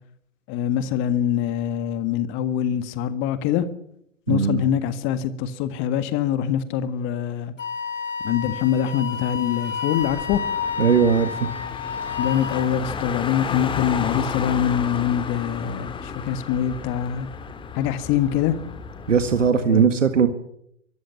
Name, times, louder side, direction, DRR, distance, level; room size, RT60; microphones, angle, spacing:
voice 1, 0.5-3.6 4.3-7.5 8.2-10.4 12.2-17.3 17.8-18.6 19.6-19.8, left 9 dB, 35° left, 13 dB, 1.7 m, -24 dB
voice 2, 4.3-4.6 10.8-11.3 19.1-20.3, right 6 dB, 80° right, 10 dB, 1.8 m, -18 dB
Wind instrument woodwind instrument, 7.6-12.7, left 6 dB, 85° left, 3.2 m, -30 dB
Car, 10.0-19.5, left 6 dB, 15° left, 1.8 m, -32 dB
24.0 x 14.5 x 8.3 m, 0.73 s
hypercardioid pair, 120°, 37 cm